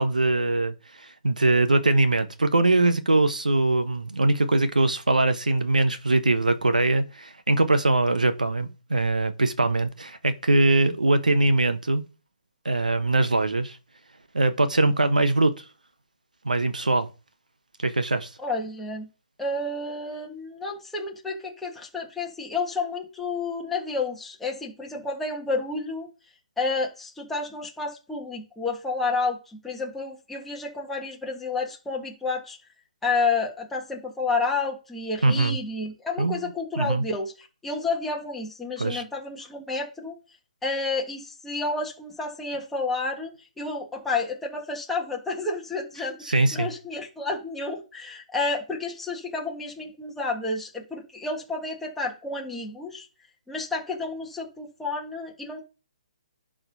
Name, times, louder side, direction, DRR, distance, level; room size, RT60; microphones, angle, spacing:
voice 1, 0.0-12.0 12.6-13.8 14.3-15.6 16.4-17.1 17.8-18.3 35.2-35.6 36.2-36.5 36.8-37.0 38.8-39.0 46.2-46.7, right 2 dB, 90° right, 1.1 m, -22 dB
voice 2, 18.4-19.1 19.4-26.1 26.6-32.6 33.0-40.1 40.6-43.3 43.6-53.1 53.5-55.6, left 3 dB, 5° left, 1.5 m, -30 dB
11.0 x 3.8 x 4.1 m
figure-of-eight pair, 140°, 4 cm